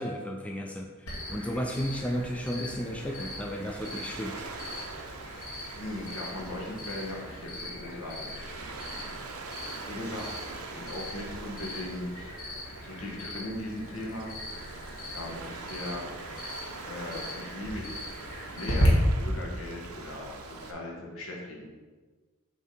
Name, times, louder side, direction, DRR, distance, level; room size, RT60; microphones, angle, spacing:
voice 1, 0.0-4.5, equal, 5° left, 1 dB, 0.4 m, -33 dB
Cricket, 1.1-18.9, equal, 85° left, 1.9 m, -39 dB
Waves surf, 1.8-20.7, right 4 dB, 80° right, 0.7 m, -44 dB
voice 2, 5.7-9.1 9.9-12.3 12.8-14.4 15.0-16.0 16.8-17.8 18.5-21.6, left 1 dB, 65° left, -1 dB, 1.5 m, -39 dB
7.2 x 3.5 x 4.3 m, 1.4 s
head